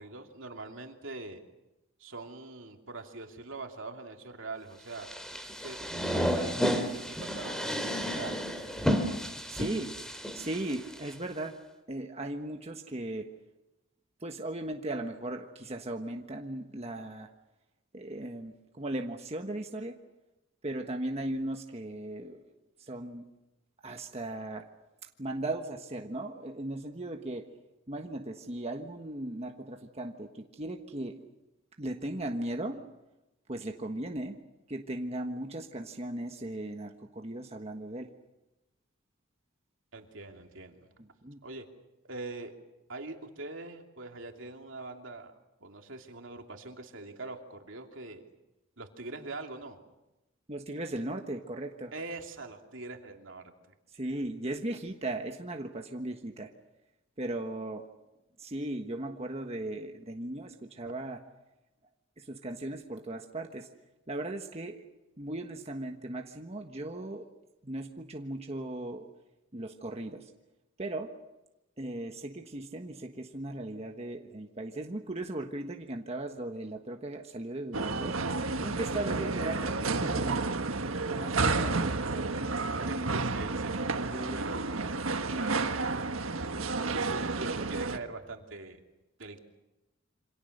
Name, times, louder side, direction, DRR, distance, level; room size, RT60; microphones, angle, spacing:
voice 1, 0.0-1.4 2.0-5.1 5.6-5.8 6.1-8.4 39.9-40.9 41.4-41.6 42.1-42.5 42.9-48.2 48.8-49.8 51.9-53.5 82.7-83.8 84.3-84.9 85.3-85.9 86.8-88.8 89.2-89.4, right 3 dB, 70° right, 3 dB, 2.9 m, -43 dB
sound 1, 5.0-11.1, equal, 5° left, 2.9 m, -32 dB
voice 2, 9.5-9.9 10.3-11.6 11.9-13.3 14.2-17.3 17.9-19.9 20.6-22.4 22.9-23.2 23.8-24.6 25.2-27.4 27.9-31.2 31.8-32.8 33.5-34.4 34.7-38.1 41.2-41.4 50.5-51.9 53.9-56.5 57.2-57.8 58.4-61.2 62.2-63.7 64.1-64.8 65.2-67.3 67.6-69.1 69.5-70.3 70.8-71.1 71.8-78.1 78.6-79.7 80.0-80.4 81.1-81.9 84.1-84.4, right 1 dB, 30° right, 3 dB, 1.4 m, -37 dB
sound 2, 77.7-88.0, right 3 dB, 90° right, 1.5 m, -31 dB
28.0 x 26.0 x 6.7 m, 0.98 s
head